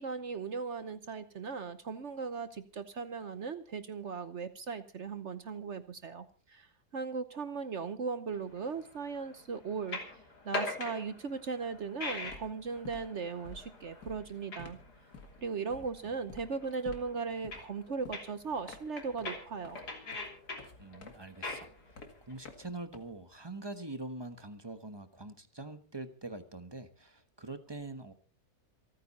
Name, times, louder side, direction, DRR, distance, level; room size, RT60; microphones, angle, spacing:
voice 1, 0.0-6.7 6.9-10.0 10.4-14.8 15.4-19.8, right 5 dB, 50° right, 12 dB, 1.2 m, -38 dB
sound 1, 8.3-22.5, left 2 dB, 90° left, 3.8 m, -43 dB
sound 2, 11.6-11.9 12.1-23.5, left 3 dB, 70° left, 2.6 m, -52 dB
voice 2, 15.8-16.1 20.8-21.7 22.3-28.1, right 2 dB, 20° right, 10 dB, 1.1 m, -44 dB
27.5 x 9.4 x 4.2 m, 0.35 s
omnidirectional pair, 1.7 m